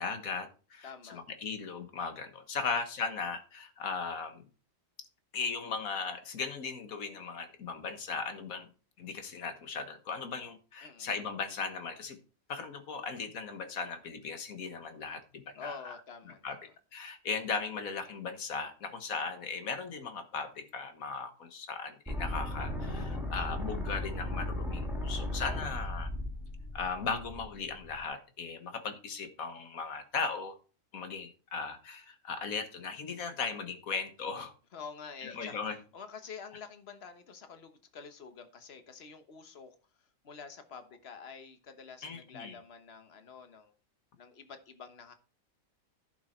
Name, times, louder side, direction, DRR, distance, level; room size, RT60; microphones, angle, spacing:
voice 1, 0.0-4.4 5.3-8.7 9.0-12.2 12.5-16.0 16.4-16.6 16.9-26.1 26.7-30.6 30.9-34.5 35.2-35.8 42.0-42.5, left 5 dB, 80° left, 1.8 m, -37 dB
voice 2, 0.8-1.2 2.6-2.7 10.8-11.1 15.6-16.7 34.7-35.6 35.9-39.8 40.2-43.7 44.2-45.1, left 5 dB, 50° left, 1.4 m, -48 dB
sound 1, 22.1-28.0, left 1 dB, ahead, 2.3 m, -36 dB
11.0 x 6.2 x 4.4 m
omnidirectional pair, 1.5 m